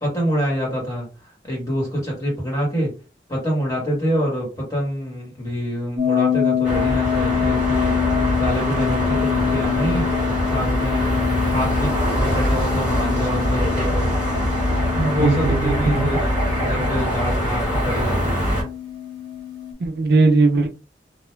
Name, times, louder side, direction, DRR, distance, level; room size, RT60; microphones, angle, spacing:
voice 1, 0.0-1.1 1.4-2.9 3.3-8.0 8.4-10.1 10.5-14.1 14.7-16.3 16.6-18.5, equal, 20° left, -3 dB, 1.2 m, -26 dB
sound 1, 6.0-19.7, left 9 dB, 25° right, 0.7 m, -26 dB
sound 2, 6.6-18.6, equal, 5° right, 1.2 m, -23 dB
voice 2, 15.0-16.1 19.8-20.7, right 3 dB, 65° right, 6 dB, 0.4 m, -19 dB
2.2 x 2.1 x 3.1 m, 0.33 s
head